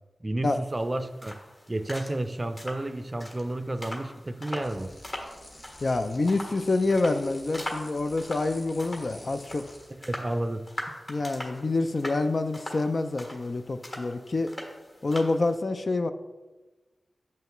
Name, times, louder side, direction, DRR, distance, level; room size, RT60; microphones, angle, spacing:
voice 1, 0.2-1.4 1.7-4.9 10.1-10.6, right 1 dB, 30° right, 10 dB, 0.4 m, -31 dB
sound 1, 0.6-15.6, left 1 dB, 40° left, 1.3 m, -42 dB
sound 2, 4.6-10.0, left 1 dB, 80° left, 1.5 m, -49 dB
voice 2, 5.8-9.7 11.1-14.5 15.0-16.1, left 3 dB, 55° left, 9 dB, 0.4 m, -27 dB
7.1 x 5.6 x 3.0 m, 1.2 s
cardioid pair, 55°, 0 cm